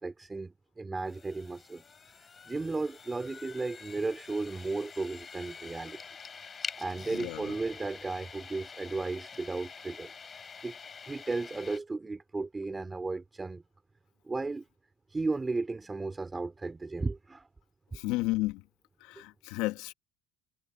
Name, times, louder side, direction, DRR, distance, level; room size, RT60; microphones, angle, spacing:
voice 1, 0.0-1.8 2.5-6.0 6.8-10.1 10.6-10.8 11.1-13.6 14.2-14.6 15.1-17.5, right 3 dB, 10° right, 3.8 m, -34 dB
sound 1, 1.1-11.8, left 5 dB, 20° left, 4.8 m, -46 dB
voice 2, 7.1-7.5 17.9-18.6 19.0-19.9, left 19 dB, 75° left, 2.2 m, -32 dB
cardioid pair, 160°, 0 cm